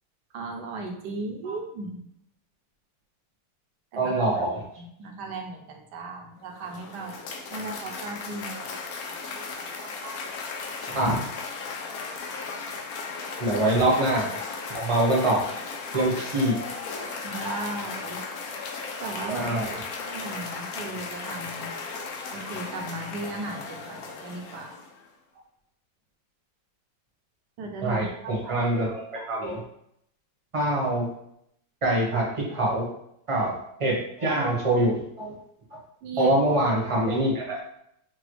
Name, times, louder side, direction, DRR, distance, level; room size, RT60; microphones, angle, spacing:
voice 1, 0.3-2.0 3.9-4.2 4.8-8.7 13.5-13.6 17.2-18.2 18.5-18.6 19.0-19.7 20.0-21.7 22.3-24.8 27.6-28.5 29.2-29.3 36.0-36.3, right 3 dB, 75° right, 2 dB, 1.3 m, -36 dB
voice 2, 3.9-4.6 9.8-10.1 10.8-11.3 13.4-14.4 14.7-15.5 15.9-16.6 19.2-19.7 27.8-29.6 30.5-31.1 31.8-32.9 33.3-35.4 36.2-37.6, right 1 dB, 25° right, -3 dB, 0.9 m, -25 dB
Cheering / Applause, 6.4-25.1, left 4 dB, 70° left, 1.0 m, -36 dB
5.8 x 2.3 x 3.1 m, 0.75 s
omnidirectional pair, 1.9 m